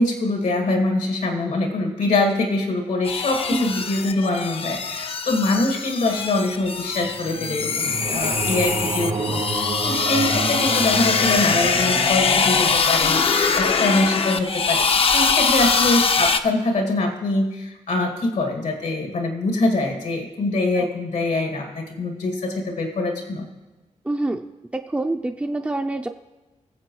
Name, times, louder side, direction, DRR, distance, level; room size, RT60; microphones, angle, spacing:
voice 1, 0.0-23.5, left 2 dB, 85° left, 3 dB, 2.0 m, -24 dB
sound 1, 3.1-16.4, left 5 dB, 50° left, 0.6 m, -22 dB
sound 2, 6.7-14.0, right 4 dB, 85° right, 3.6 m, -30 dB
voice 2, 8.0-8.3 15.5-15.6 20.8-20.9 24.1-24.5 24.7-26.1, right 2 dB, 10° right, 4 dB, 0.4 m, -26 dB
21.0 x 7.6 x 3.1 m, 1.1 s
wide cardioid pair, 95°, 12 cm